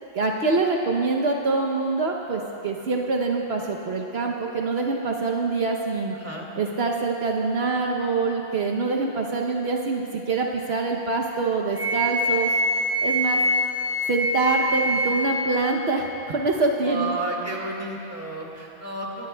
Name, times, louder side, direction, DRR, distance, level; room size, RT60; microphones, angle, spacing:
voice 1, 0.1-6.1 6.6-12.5 13.0-13.4 14.1-17.1, right 3 dB, 65° right, 1 dB, 1.1 m, -25 dB
voice 2, 6.1-6.5 16.8-19.3, right 2 dB, 15° right, -1 dB, 1.8 m, -32 dB
Wind instrument woodwind instrument, 11.7-15.4, equal, 5° left, 3.5 m, -24 dB
24.5 x 17.5 x 2.2 m, 2.9 s
omnidirectional pair, 1.2 m